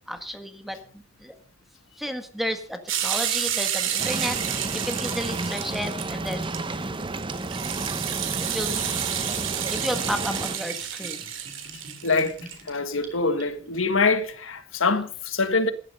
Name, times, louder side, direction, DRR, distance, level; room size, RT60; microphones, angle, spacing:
voice 1, 0.1-0.8 1.2-1.3 2.0-6.5 8.5-9.0 9.7-11.2, equal, ahead, 1.5 m, -32 dB
sound 1, 2.9-12.6, right 9 dB, 70° right, 2.7 m, -30 dB
sound 2, 4.0-10.6, right 2 dB, 25° right, 0.8 m, -32 dB
Gurgling / Bathtub (filling or washing), 8.8-13.9, equal, 40° right, 3.9 m, -46 dB
voice 2, 12.0-12.3 12.6-15.7, left 4 dB, 80° left, 1.6 m, -24 dB
14.5 x 11.5 x 5.4 m
head